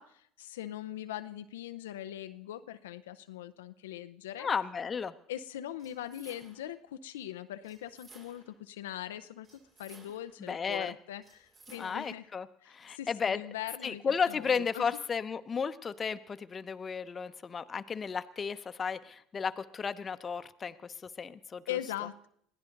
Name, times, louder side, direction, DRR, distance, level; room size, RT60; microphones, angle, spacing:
voice 1, 0.0-4.5 5.3-12.3 12.6-14.9 21.7-22.3, left 12 dB, 90° left, 10 dB, 0.6 m, -41 dB
voice 2, 4.4-5.2 10.4-10.9 11.8-13.4 13.8-21.6, left 6 dB, 35° left, 11 dB, 0.9 m, -34 dB
sound 1, 5.8-6.8 7.6-8.6 9.4-10.4 11.2-12.2, right 3 dB, 45° right, 5.6 m, -57 dB
21.5 x 16.0 x 3.9 m, 0.69 s
hypercardioid pair, 75°, 0 cm